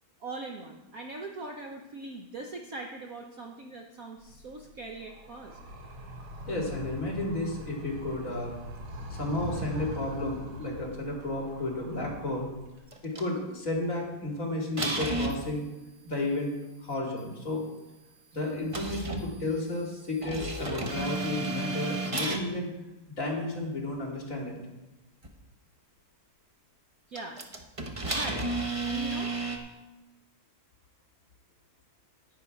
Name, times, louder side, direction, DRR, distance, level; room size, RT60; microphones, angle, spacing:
voice 1, 0.2-5.6 27.1-27.4 28.1-28.5 28.8-29.3, right 2 dB, 55° right, 2 dB, 1.1 m, -41 dB
Animal, 4.2-12.8, equal, 70° right, 2.3 m, -42 dB
voice 2, 6.5-8.5 9.1-12.5 13.0-15.6 16.0-16.5 16.8-17.7 18.3-22.7 23.1-24.6, left 2 dB, 40° left, -1 dB, 2.7 m, -32 dB
sound 1, 12.9-13.2 14.8-15.4 18.7-22.5 25.2-25.3 27.2-29.6, right 2 dB, 25° right, 0.7 m, -33 dB
11.0 x 10.0 x 4.7 m, 1.0 s
omnidirectional pair, 2.4 m